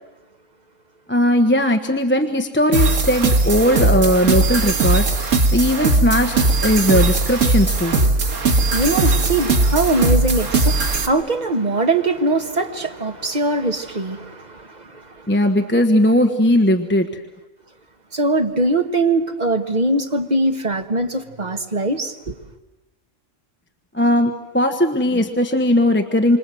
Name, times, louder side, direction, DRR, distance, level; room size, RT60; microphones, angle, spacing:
voice 1, 1.1-6.3 6.6-7.9 15.3-17.1 23.9-26.4, left 1 dB, 10° left, 1.2 m, -18 dB
sound 1, 2.7-11.1, right 2 dB, 85° right, 2.0 m, -18 dB
voice 2, 7.9-15.3 18.1-22.4, right 2 dB, 35° right, 1.5 m, -22 dB
27.5 x 26.0 x 7.8 m
omnidirectional pair, 1.3 m